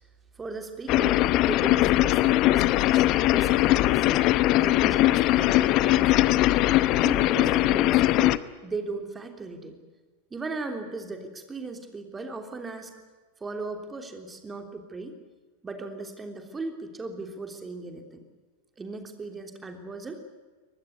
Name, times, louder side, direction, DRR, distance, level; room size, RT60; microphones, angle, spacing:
voice 1, 0.4-4.2 4.6-8.3 8.6-9.8 10.3-12.9 13.4-15.2 15.6-18.2 18.8-20.2, right 3 dB, 15° right, 5 dB, 3.3 m, -37 dB
sound 1, 0.9-8.4, left 16 dB, 40° left, 0.8 m, -21 dB
24.5 x 19.5 x 8.2 m, 1.4 s
figure-of-eight pair, 90°, 0 cm